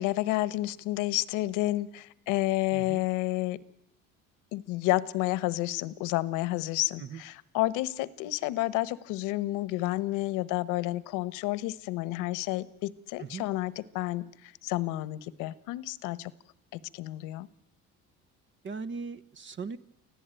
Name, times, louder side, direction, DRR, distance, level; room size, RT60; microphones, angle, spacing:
voice 1, 0.0-3.6 4.5-16.3 16.7-17.5, left 17 dB, 85° left, 19 dB, 1.1 m, -30 dB
voice 2, 2.7-3.0 7.0-7.2 13.2-13.5 18.6-19.8, right 5 dB, 40° right, 14 dB, 1.0 m, -39 dB
25.0 x 15.5 x 9.0 m, 0.85 s
cardioid pair, 110°, 30 cm